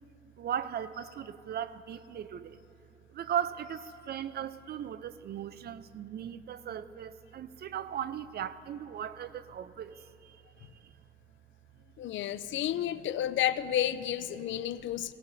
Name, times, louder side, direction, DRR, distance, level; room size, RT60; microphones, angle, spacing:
voice 1, 0.4-2.6 3.1-10.9, right 9 dB, 55° right, 0.5 m, -38 dB
voice 2, 12.0-15.1, left 11 dB, 70° left, 0.5 m, -31 dB
17.5 x 17.5 x 2.7 m
cardioid pair, 90°, 20 cm